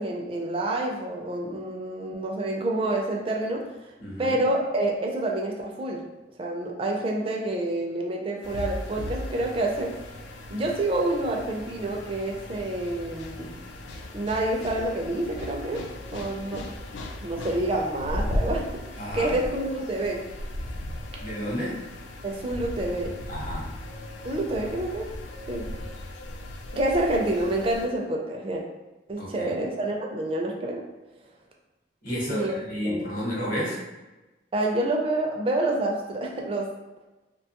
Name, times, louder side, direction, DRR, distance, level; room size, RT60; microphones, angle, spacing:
voice 1, 0.0-3.6 4.2-6.0 6.4-9.9 10.5-13.6 14.1-15.8 16.1-16.6 17.2-18.6 19.1-20.2 22.2-23.2 24.2-25.1 25.5-25.6 26.7-28.6 29.1-30.8 32.3-32.6 32.8-33.1 34.5-36.7, right 1 dB, 30° right, 0 dB, 0.4 m, -28 dB
voice 2, 4.0-4.4 19.0-19.4 21.2-21.8 23.3-23.7 29.2-29.5 32.0-33.8, equal, 50° left, -5 dB, 0.9 m, -31 dB
sound 1, 8.4-27.9, left 1 dB, 75° left, 0.4 m, -37 dB
2.7 x 2.2 x 2.8 m, 1.1 s
head